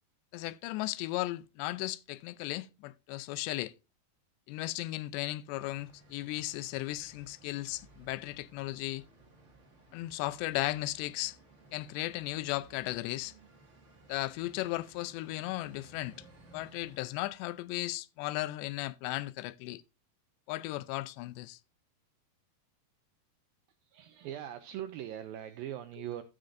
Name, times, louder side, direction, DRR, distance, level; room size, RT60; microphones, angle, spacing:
voice 1, 0.3-3.7 4.5-9.0 9.9-11.4 11.7-13.3 14.1-16.2 16.5-19.8 20.5-21.6, left 17 dB, 90° left, 2.8 m, -36 dB
sound 1, 5.5-17.0, right 3 dB, 45° right, 0.9 m, -58 dB
voice 2, 23.8-26.2, right 11 dB, 80° right, 2.1 m, -41 dB
15.0 x 7.7 x 2.5 m
omnidirectional pair, 4.9 m